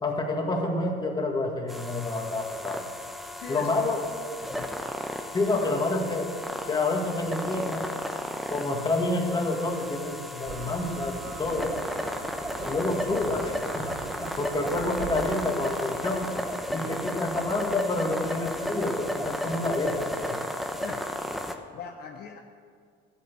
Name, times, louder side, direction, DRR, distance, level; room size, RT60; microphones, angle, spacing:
voice 1, 0.0-2.9 3.5-4.0 5.3-6.4 6.7-7.9 8.5-11.8 12.6-13.9 14.2-16.3 16.7-20.4, left 2 dB, 20° left, 1 dB, 1.8 m, -28 dB
sound 1, 1.7-21.5, equal, ahead, 0.8 m, -34 dB
voice 2, 3.3-3.7 4.4-4.8 5.5-5.8 11.6-11.8 16.7-17.0 20.7-21.1 21.7-22.4, left 7 dB, 55° left, 3 dB, 0.9 m, -42 dB
sound 2, 10.5-15.5, right 9 dB, 65° right, 0.7 m, -42 dB
12.5 x 8.5 x 6.1 m, 2.1 s
cardioid pair, 120°, 19 cm